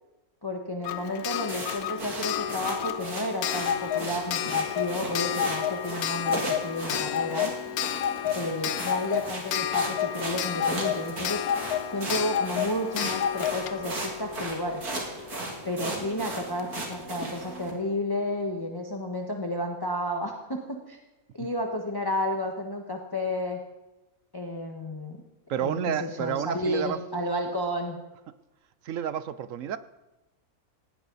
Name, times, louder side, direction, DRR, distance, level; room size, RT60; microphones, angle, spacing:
voice 1, 0.4-7.5 8.3-11.4 11.9-14.8 15.6-20.6 20.9-21.0 21.3-23.6 24.3-25.2 25.6-28.0, left 1 dB, 15° left, 2 dB, 1.4 m, -31 dB
Clock, 0.8-15.4 16.6-16.7 16.9-17.0, left 9 dB, 80° left, 1.2 m, -30 dB
sound 1, 1.5-17.7, right 2 dB, 85° right, 3.4 m, -37 dB
voice 2, 25.5-27.0 28.8-29.8, right 9 dB, 65° right, 14 dB, 1.0 m, -30 dB
18.5 x 17.5 x 4.1 m, 1.0 s
omnidirectional pair, 1.6 m